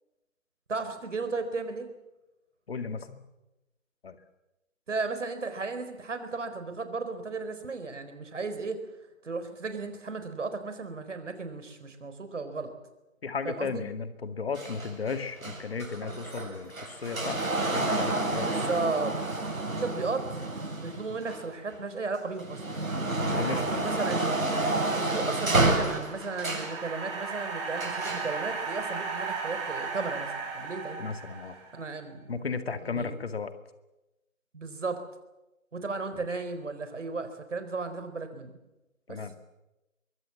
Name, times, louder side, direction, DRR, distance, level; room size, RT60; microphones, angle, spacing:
voice 1, 0.7-1.9 4.9-8.8 9.2-12.7 13.4-13.8 18.4-19.2 19.7-20.4 20.7-22.6 23.4-24.5 24.9-31.0 31.7-32.5 32.9-33.1 34.5-35.0 35.7-38.6 39.1-39.2, right 4 dB, 60° right, 9 dB, 4.4 m, -35 dB
voice 2, 2.7-3.2 4.0-4.2 13.2-18.5 23.2-23.9 31.0-31.6 32.3-33.5 36.1-36.2 39.1-39.3, left 5 dB, 45° left, 9 dB, 2.2 m, -35 dB
sound 1, 14.6-21.8 22.2-26.8 27.8-28.3 29.2-29.3, right 2 dB, 85° right, 7.9 m, -30 dB
sound 2, 25.7-31.9, right 5 dB, 20° right, 6.0 m, -36 dB
24.5 x 22.5 x 7.5 m, 0.99 s
figure-of-eight pair, 165°, 41 cm